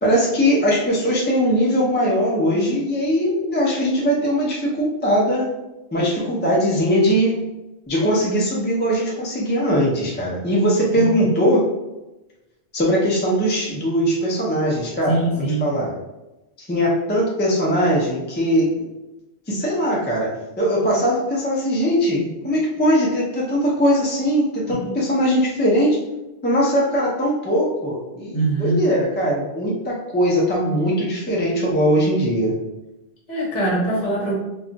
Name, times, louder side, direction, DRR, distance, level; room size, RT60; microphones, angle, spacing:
voice 1, 0.0-5.5 5.9-7.4 7.9-11.7 12.7-15.2 15.6-15.9 16.7-18.9 19.5-20.3 20.6-26.0 26.4-32.5, equal, 15° left, -4 dB, 0.4 m, -20 dB
voice 2, 15.1-15.7 24.7-25.0 28.3-28.8 33.3-34.3, right 2 dB, 45° left, -5 dB, 1.0 m, -22 dB
2.4 x 2.3 x 3.8 m, 1.0 s
omnidirectional pair, 1.1 m